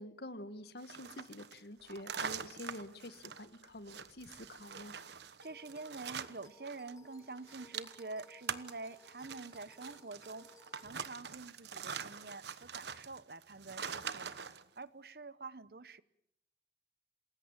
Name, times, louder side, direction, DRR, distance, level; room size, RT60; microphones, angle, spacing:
voice 1, 0.0-4.9, left 1 dB, 65° left, 12 dB, 1.6 m, -48 dB
sound 1, 0.8-6.9 7.2-14.6, right 7 dB, 75° right, 1.2 m, -44 dB
sound 2, 5.4-10.9, left 2 dB, 20° left, 1.3 m, -62 dB
voice 2, 5.4-10.5 10.8-14.3 14.8-16.0, right 3 dB, 60° right, 16 dB, 0.9 m, -47 dB
28.0 x 20.5 x 7.4 m, 0.73 s
head